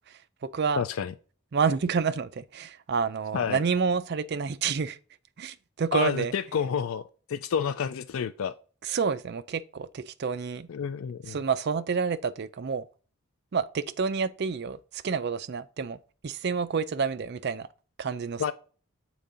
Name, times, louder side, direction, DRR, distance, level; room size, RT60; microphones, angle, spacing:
voice 1, 0.1-0.8 1.5-5.0 5.4-6.3 8.8-10.7 11.3-12.9 13.5-17.7 18.0-18.5, right 5 dB, 45° right, 0.4 m, -29 dB
voice 2, 0.8-1.1 3.3-3.6 5.9-7.0 7.3-8.5 10.7-11.4 18.4-18.5, left 7 dB, 65° left, 0.3 m, -29 dB
7.0 x 4.5 x 3.7 m
head